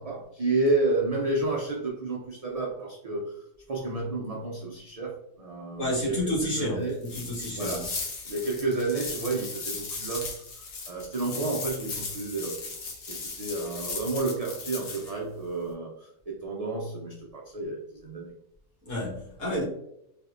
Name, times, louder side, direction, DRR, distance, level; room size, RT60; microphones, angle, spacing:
voice 1, 0.0-7.0 7.6-7.9 8.3-12.6 13.1-18.3, right 2 dB, 80° right, -2 dB, 0.3 m, -31 dB
voice 2, 5.8-7.9 18.8-19.6, left 1 dB, 70° left, -7 dB, 1.9 m, -30 dB
sound 1, 7.0-15.1, left 4 dB, 90° left, 1.2 m, -37 dB
4.1 x 2.8 x 2.4 m, 0.79 s
omnidirectional pair, 1.4 m